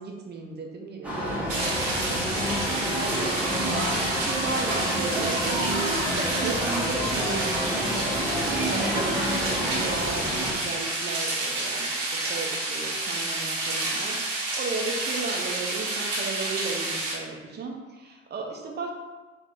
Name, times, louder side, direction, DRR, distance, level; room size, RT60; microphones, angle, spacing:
voice 1, 0.0-7.4 8.5-18.9, right 4 dB, 25° right, 1 dB, 0.9 m, -35 dB
sound 1, 1.0-10.5, equal, 5° right, 1.1 m, -28 dB
sound 2, 1.5-17.1, right 2 dB, 55° right, 1.2 m, -30 dB
3.3 x 3.2 x 4.1 m, 1.3 s
figure-of-eight pair, 70°, 37 cm